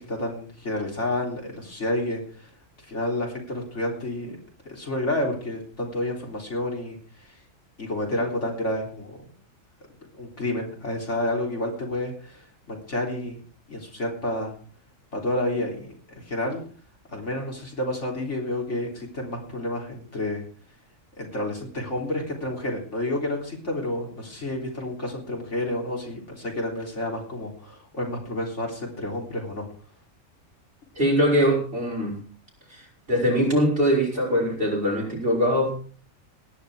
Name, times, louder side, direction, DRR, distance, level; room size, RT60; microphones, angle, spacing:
voice 1, 0.0-2.5 2.8-4.4 4.7-7.3 7.8-9.2 10.1-13.4 13.7-14.5 15.1-16.6 17.1-20.4 21.2-29.7, left 1 dB, 60° left, 0 dB, 4.0 m, -30 dB
voice 2, 31.0-32.1 32.7-32.8 33.1-35.7, equal, 40° right, -2 dB, 7.2 m, -22 dB
18.5 x 11.0 x 4.9 m, 0.42 s
omnidirectional pair, 1.4 m